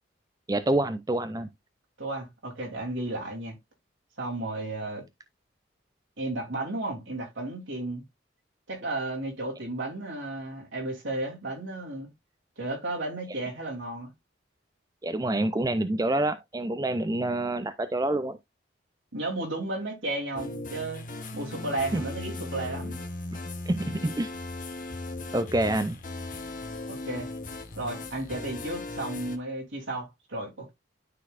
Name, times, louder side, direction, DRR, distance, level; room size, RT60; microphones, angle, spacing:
voice 1, 0.5-1.5 15.0-18.4 21.9-22.0 23.7-24.3 25.3-26.0, right 1 dB, 20° right, 0.4 m, -27 dB
voice 2, 2.0-3.6 4.2-5.0 6.2-8.0 8.7-12.1 12.6-14.1 19.1-21.0 21.3-23.0 26.9-27.3 27.8-30.7, right 2 dB, 80° right, 2.9 m, -33 dB
sound 1, 20.3-29.4, left 2 dB, 45° left, 0.9 m, -37 dB
12.0 x 4.0 x 2.4 m
head